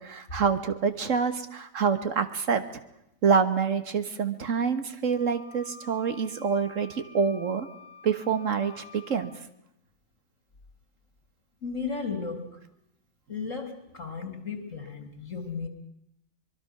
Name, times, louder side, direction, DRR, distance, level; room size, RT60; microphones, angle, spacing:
voice 1, 0.0-2.6 3.2-7.7 8.0-9.3, right 6 dB, 70° right, 10 dB, 1.7 m, -26 dB
Wind instrument woodwind instrument, 5.0-9.3, left 2 dB, 15° left, 6.0 m, -49 dB
voice 2, 11.6-12.6 13.3-15.7, left 5 dB, 70° left, 6 dB, 3.1 m, -35 dB
24.5 x 22.0 x 6.0 m, 0.82 s
omnidirectional pair, 1.4 m